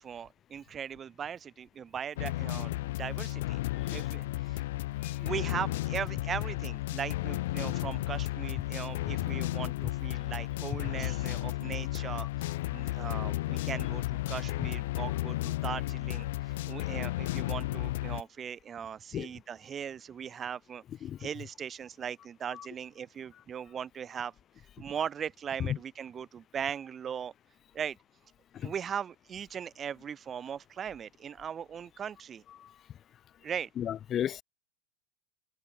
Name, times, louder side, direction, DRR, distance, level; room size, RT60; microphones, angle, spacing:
voice 1, 0.0-4.6 5.2-20.8 21.2-24.3 24.8-27.3 27.7-28.0 28.6-32.4 33.4-33.7, right 8 dB, 25° right, 6.2 m, -39 dB
sound 1, 2.2-18.2, left 17 dB, 70° left, 4.4 m, -33 dB
voice 2, 33.8-34.4, left 10 dB, 30° left, 1.5 m, -34 dB
supercardioid pair, 120°, 0 cm